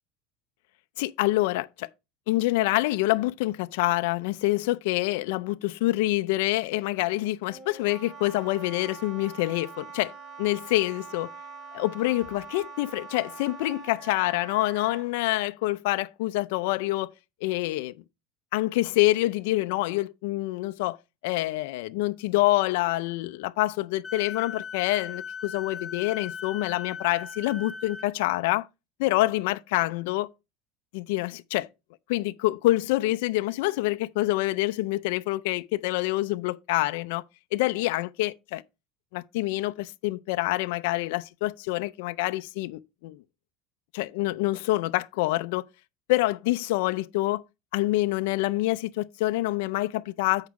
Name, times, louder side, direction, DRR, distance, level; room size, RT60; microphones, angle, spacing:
voice 1, 1.0-1.9 2.3-10.1 10.4-11.3 11.7-17.1 17.4-17.9 18.5-21.0 21.2-28.7 29.0-30.3 30.9-31.7 32.1-37.2 37.5-38.6 39.1-43.2 43.9-45.7 46.1-47.4 47.7-50.5, left 18 dB, 80° left, 0.4 m, -26 dB
Wind instrument woodwind instrument, 7.5-15.1, right 4 dB, 35° right, 1.4 m, -44 dB
Wind instrument woodwind instrument 2, 24.0-28.1, left 6 dB, 15° left, 0.6 m, -38 dB
8.2 x 4.8 x 4.7 m
cardioid pair, 160°, 0 cm